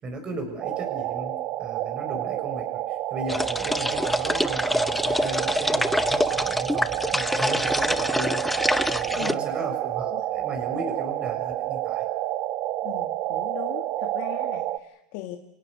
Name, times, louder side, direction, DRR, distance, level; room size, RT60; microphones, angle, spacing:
voice 1, 0.0-12.1, right 2 dB, 30° right, 5 dB, 6.8 m, -36 dB
sound 1, 0.6-14.8, right 14 dB, 50° right, 1.1 m, -29 dB
sound 2, 3.3-9.3, left 1 dB, 5° left, 0.7 m, -25 dB
voice 2, 12.8-15.4, left 13 dB, 60° left, 3 dB, 1.9 m, -39 dB
28.0 x 17.5 x 6.9 m, 0.92 s
hypercardioid pair, 115°, 3 cm